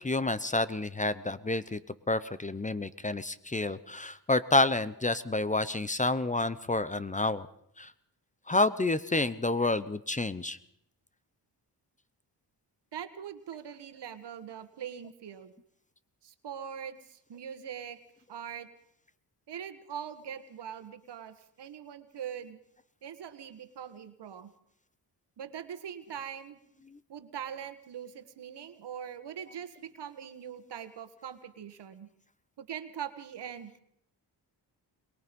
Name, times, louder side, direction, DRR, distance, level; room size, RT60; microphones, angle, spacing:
voice 1, 0.0-1.8 2.1-7.5 7.8-7.9 8.5-10.6, left 2 dB, 20° left, 15 dB, 0.9 m, -29 dB
voice 2, 12.9-15.5 16.2-18.0 18.3-18.7 19.5-22.6 23.0-24.5 25.4-26.6 27.1-32.1 32.6-33.8, right 8 dB, 70° right, 11 dB, 1.7 m, -42 dB
22.0 x 22.0 x 5.4 m, 0.72 s
cardioid pair, 80°, 42 cm